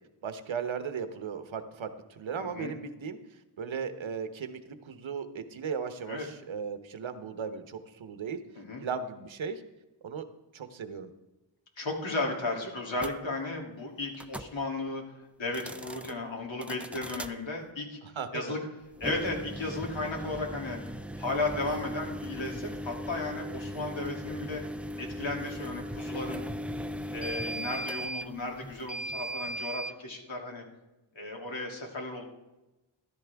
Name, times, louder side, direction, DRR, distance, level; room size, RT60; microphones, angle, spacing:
voice 1, 0.2-1.9 2.2-3.2 3.6-8.4 8.8-9.6 10.0-10.2 10.5-11.1 18.0-18.6 23.8-23.9, right 6 dB, 70° right, 9 dB, 1.0 m, -36 dB
voice 2, 2.4-2.7 6.0-6.2 8.6-8.8 11.8-15.0 15.4-18.0 18.3-18.6 19.0-20.8 21.2-24.6 25.0-26.4 27.1-30.6 31.1-32.2, left 2 dB, 65° left, 0 dB, 2.8 m, -34 dB
sound 1, 13.0-13.1 14.1-14.5 15.4-16.1 16.6-17.3 18.9-30.0, equal, 5° right, 0.3 m, -38 dB
14.5 x 13.0 x 3.5 m, 1.0 s
wide cardioid pair, 130°, 49 cm